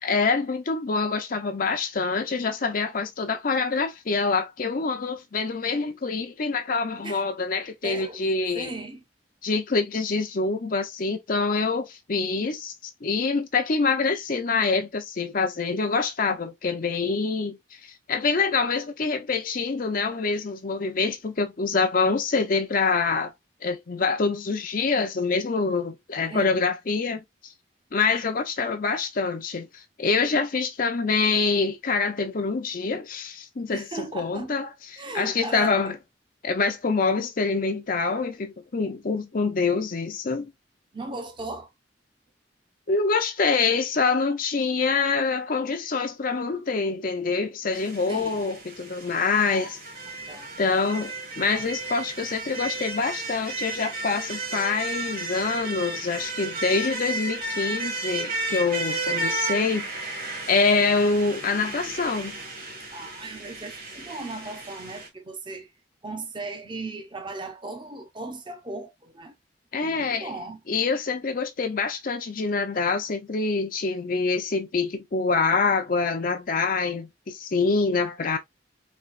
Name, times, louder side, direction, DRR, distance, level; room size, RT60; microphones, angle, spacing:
voice 1, 0.0-8.7 9.4-23.3 23.6-27.5 27.9-36.0 36.4-40.5 42.9-49.8 50.6-59.9 60.5-62.4 69.7-70.3 70.7-78.4, left 4 dB, 50° left, 0.6 m, -25 dB
voice 2, 7.8-8.2 8.5-9.0 26.3-26.6 33.7-34.5 34.9-35.8 40.9-41.7 48.1-48.4 49.5-49.7 50.3-50.5 62.9-65.7 66.0-69.3 69.8-70.6, right 3 dB, 25° right, 0.8 m, -37 dB
sound 1, 47.7-65.1, right 2 dB, 50° right, 1.9 m, -33 dB
4.4 x 2.9 x 2.4 m
head